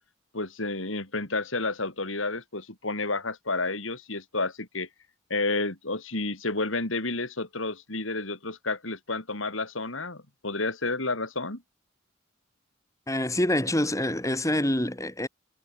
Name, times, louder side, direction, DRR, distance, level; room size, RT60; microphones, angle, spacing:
voice 1, 0.3-4.9 5.3-11.6, left 3 dB, 75° left, 5.3 m, -30 dB
voice 2, 13.1-15.3, left 1 dB, 15° left, 3.2 m, -26 dB
head